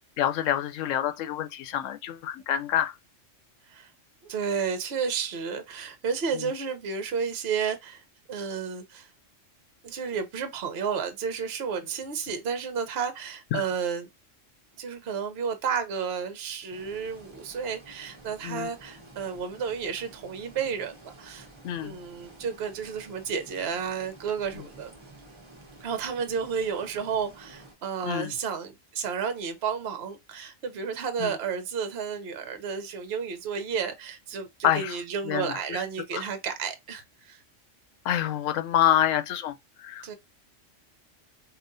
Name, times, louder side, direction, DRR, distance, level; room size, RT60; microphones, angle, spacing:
voice 1, 0.2-3.0 6.3-6.5 13.5-13.6 18.4-18.7 21.6-22.0 24.6-24.7 28.0-28.3 31.2-31.4 34.6-35.0 35.2-35.8 36.1-36.2 38.0-40.2, left 11 dB, 80° left, 1.0 m, -27 dB
voice 2, 4.2-9.1 9.8-14.1 14.8-21.5 21.8-24.9 25.8-37.4 40.0-40.2, right 6 dB, 60° right, 0.9 m, -32 dB
sound 1, 16.7-27.7, right 2 dB, 25° right, 0.9 m, -51 dB
4.9 x 2.4 x 2.5 m
omnidirectional pair, 1.3 m